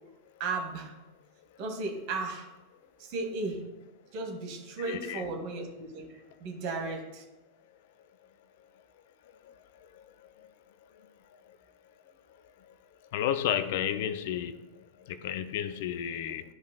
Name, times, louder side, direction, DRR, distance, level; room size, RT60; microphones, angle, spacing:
voice 1, 0.4-0.9 1.6-2.5 3.0-3.6 4.1-6.1 6.4-7.2, right 3 dB, 45° right, 2 dB, 1.8 m, -35 dB
voice 2, 4.8-5.3 13.1-14.6 15.1-16.4, left 10 dB, 50° left, 12 dB, 0.5 m, -31 dB
13.0 x 5.1 x 2.2 m, 1.1 s
figure-of-eight pair, 90°, 0 cm